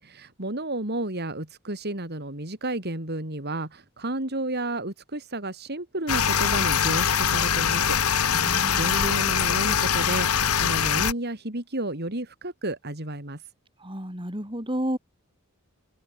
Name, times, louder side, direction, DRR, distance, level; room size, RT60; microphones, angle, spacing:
voice 1, 0.0-8.0 8.3-13.4, right 1 dB, 50° right, 4.0 m, -32 dB
sound 1, 6.1-11.1, left 8 dB, 85° left, 1.4 m, -23 dB
voice 2, 8.3-9.1 13.8-15.0, equal, 25° right, 7.1 m, -32 dB
head